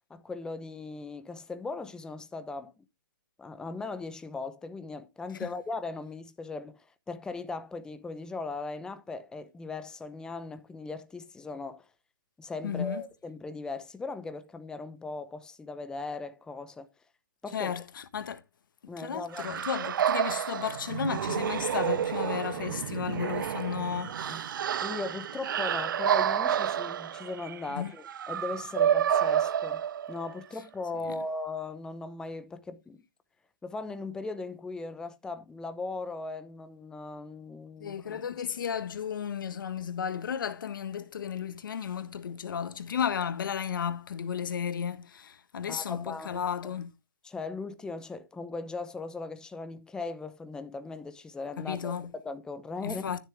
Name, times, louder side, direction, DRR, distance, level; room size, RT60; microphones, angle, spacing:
voice 1, 0.1-2.7 3.4-11.8 12.4-16.9 17.4-17.7 18.9-19.6 24.0-24.4 24.8-29.8 30.1-33.0 33.6-38.2 45.7-46.4 47.2-53.0, left 3 dB, 5° left, 0.9 m, -38 dB
voice 2, 12.6-13.0 17.5-18.4 19.0-24.6 27.7-27.9 31.0-31.2 37.8-46.9 51.6-52.1 52.8-53.2, left 8 dB, 70° left, 1.5 m, -34 dB
sound 1, 19.3-30.4, right 9 dB, 70° right, 0.5 m, -29 dB
13.0 x 7.3 x 3.5 m
hypercardioid pair, 145°, 11 cm